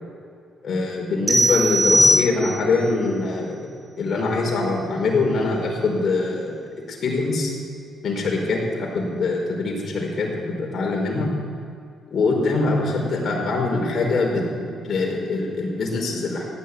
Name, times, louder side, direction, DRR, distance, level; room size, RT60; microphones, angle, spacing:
voice 1, 0.6-3.7 4.0-6.6 6.9-7.5 8.0-11.3 12.1-16.5, left 3 dB, 50° left, -1 dB, 4.9 m, -23 dB
sound 1, 1.3-2.8, equal, 40° right, 3.7 m, -19 dB
15.5 x 10.5 x 8.7 m, 2.3 s
cardioid pair, 90°, 0 cm